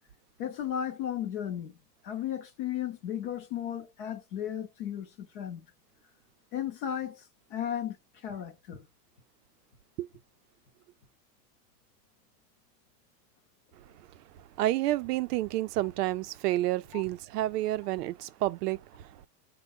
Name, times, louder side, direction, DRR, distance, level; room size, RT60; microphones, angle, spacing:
voice 1, 0.4-1.8 2.0-5.6 6.5-7.2 7.5-8.9 16.9-17.0, left 10 dB, 35° left, 0.6 m, -35 dB
voice 2, 14.6-19.3, right 15 dB, 70° right, 0.5 m, -30 dB
4.4 x 2.2 x 3.5 m
supercardioid pair, 165°, 50 cm